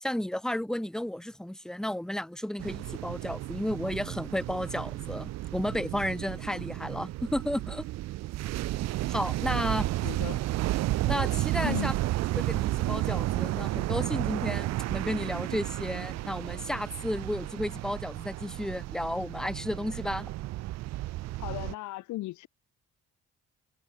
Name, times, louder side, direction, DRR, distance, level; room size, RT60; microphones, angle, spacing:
voice 1, 0.0-7.9 9.1-9.9 11.1-11.9 12.3-20.3, left 1 dB, ahead, 1.8 m, -33 dB
sound 1, 2.6-21.7, right 17 dB, 65° right, 0.5 m, -32 dB
voice 2, 9.5-10.5 11.6-11.9 21.3-22.5, left 17 dB, 80° left, 1.1 m, -37 dB
cardioid pair, 105°, 29 cm